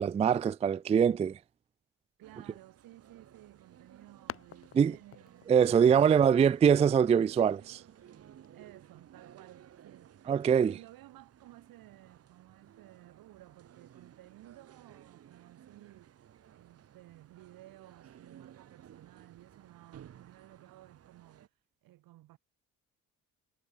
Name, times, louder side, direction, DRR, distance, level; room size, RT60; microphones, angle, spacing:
voice 1, 0.0-1.4 4.7-5.0 5.5-7.8 10.3-10.7, right 7 dB, 20° right, 0.3 m, -23 dB
sound 1, 2.2-21.5, right 10 dB, 45° right, 3.0 m, -57 dB
voice 2, 2.2-6.0 8.5-10.1 10.6-16.2 16.5-21.5 21.8-22.4, right 16 dB, 85° right, 8.0 m, -56 dB
sound 2, 3.4-8.5, left 10 dB, 40° left, 1.4 m, -51 dB
cardioid pair, 170°, 33 cm